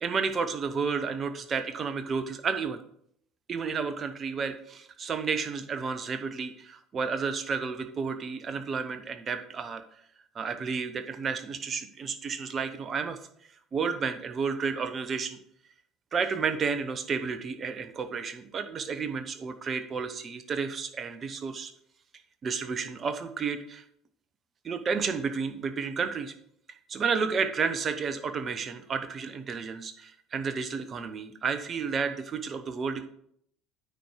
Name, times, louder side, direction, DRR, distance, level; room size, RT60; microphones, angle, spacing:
voice 1, 0.0-2.8 3.5-9.8 10.3-13.2 13.7-15.4 16.1-21.7 22.4-23.8 24.6-26.3 26.9-33.0, right 5 dB, 35° right, 9 dB, 0.9 m, -31 dB
9.1 x 4.5 x 5.0 m, 0.69 s
figure-of-eight pair, 65°, 0 cm